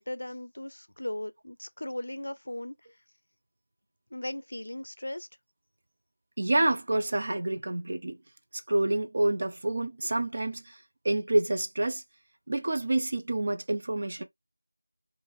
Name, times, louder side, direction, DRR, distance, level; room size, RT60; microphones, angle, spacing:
voice 1, 0.0-2.8 4.1-5.3, left 1 dB, 50° left, 0.5 m, -37 dB
voice 2, 6.4-8.2 8.7-10.8 11.0-12.0 12.5-14.2, right 2 dB, 25° right, 0.5 m, -28 dB
4.8 x 2.5 x 2.5 m
figure-of-eight pair, 175°, 0 cm